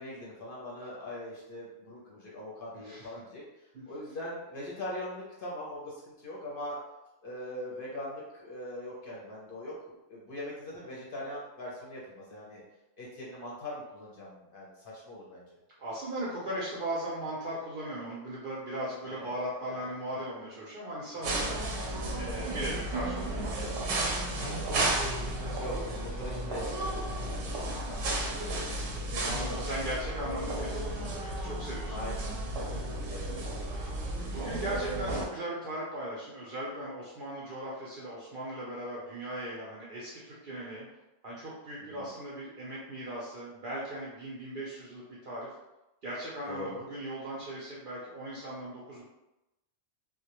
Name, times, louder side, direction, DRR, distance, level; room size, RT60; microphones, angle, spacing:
voice 1, 0.0-3.4 3.9-6.8 7.2-12.6 13.0-14.7 15.0-15.6 19.0-19.4 19.6-19.9 24.4-24.7 25.6-28.9 31.9-32.3 32.6-33.4 41.9-42.1 46.5-46.9, left 1 dB, 55° left, -5 dB, 0.7 m, -41 dB
voice 2, 2.7-3.1 3.7-3.9 15.8-21.7 22.1-23.8 25.7-25.9 26.3-26.5 27.7-27.9 29.2-31.9 34.2-40.9 41.2-45.5 46.0-49.0, right 1 dB, 60° right, -6 dB, 0.5 m, -38 dB
sound 1, 21.2-35.3, right 1 dB, 80° right, 0.9 m, -33 dB
2.2 x 2.1 x 2.8 m, 0.96 s
omnidirectional pair, 1.3 m